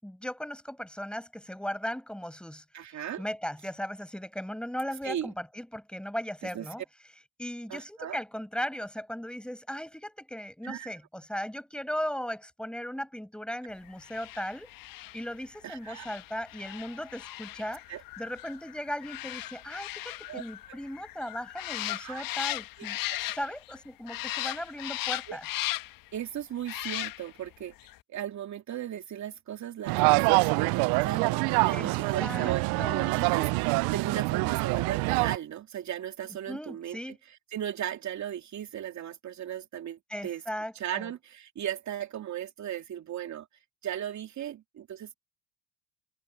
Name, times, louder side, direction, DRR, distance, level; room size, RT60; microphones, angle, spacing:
voice 1, 0.0-6.8 7.4-14.7 15.1-17.8 18.2-23.0 23.3-25.4 31.7-33.1 36.5-37.2 40.1-41.1, equal, ahead, 6.6 m, -37 dB
voice 2, 2.7-3.3 5.0-5.3 6.5-6.7 7.7-8.2 10.6-10.9 15.6-16.1 17.9-18.0 20.3-20.4 20.7-20.8 22.0-22.2 23.1-23.2 25.3-25.4 26.1-27.7 28.1-40.4 40.7-43.5 43.8-45.1, right 10 dB, 45° right, 2.8 m, -37 dB
sound 1, 14.0-23.8 24.1-26.1 26.6-27.5 27.8-27.9, left 17 dB, 55° left, 1.7 m, -37 dB
sound 2, 29.9-35.4, right 28 dB, 65° right, 0.8 m, -25 dB
hypercardioid pair, 75°, 39 cm